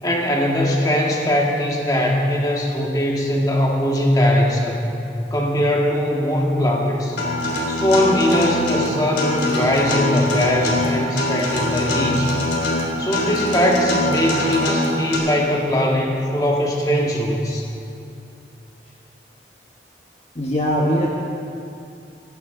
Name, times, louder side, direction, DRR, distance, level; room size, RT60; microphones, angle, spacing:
voice 1, 0.0-4.9 5.3-7.2 7.7-12.3 13.0-17.7, equal, 20° left, -1 dB, 1.8 m, -20 dB
Acoustic guitar, 7.2-15.2, left 1 dB, 85° left, 3.4 m, -23 dB
voice 2, 20.3-21.1, equal, 40° left, -3 dB, 1.4 m, -20 dB
20.0 x 15.5 x 3.9 m, 2.6 s
head